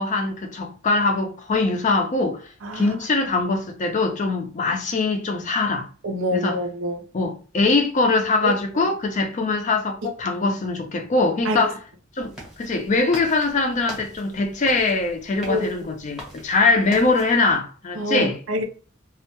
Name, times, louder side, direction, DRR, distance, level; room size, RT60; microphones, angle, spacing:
voice 1, 0.0-2.4 2.7-5.9 6.3-6.6 7.1-11.8 12.2-18.4, left 3 dB, 40° left, 0.4 m, -22 dB
voice 2, 2.6-3.0 6.0-7.0 8.4-8.9 10.0-10.1 11.5-11.7 15.5-15.8 18.0-18.6, equal, 85° right, 0.5 m, -26 dB
sound 1, 12.2-17.6, equal, 5° right, 0.8 m, -42 dB
2.1 x 2.0 x 2.8 m
head